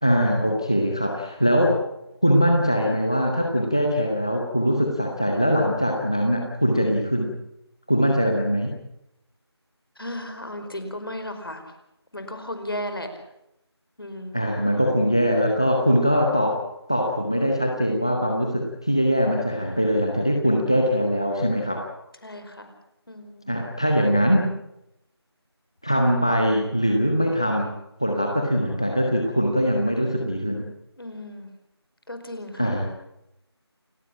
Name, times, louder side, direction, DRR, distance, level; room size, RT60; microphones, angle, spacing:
voice 1, 0.0-1.8 2.2-7.3 7.9-8.7 14.3-16.6 16.9-21.9 23.5-24.5 25.8-27.7 28.0-30.7 32.6-32.9, equal, 10° left, 1 dB, 0.8 m, -22 dB
voice 2, 10.0-11.6 12.1-13.1 14.0-14.4 22.2-22.7 23.1-23.5 31.0-31.5 32.1-32.8, left 1 dB, 55° left, 7 dB, 5.0 m, -35 dB
29.0 x 12.5 x 8.7 m, 0.85 s
figure-of-eight pair, 175°, 14 cm